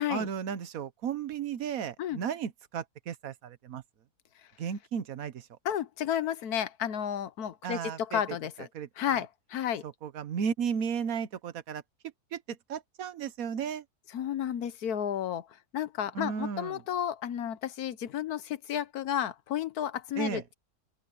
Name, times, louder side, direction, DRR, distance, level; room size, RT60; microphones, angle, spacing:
voice 1, 0.1-3.8 4.6-5.5 7.6-8.2 8.7-9.2 9.8-11.8 12.3-13.8 16.1-16.8 20.2-20.4, right 7 dB, 65° right, 1.4 m, -34 dB
voice 2, 5.6-8.7 9.0-9.8 14.1-15.5 15.7-20.5, left 10 dB, 75° left, 1.4 m, -32 dB
open air
omnidirectional pair, 1.7 m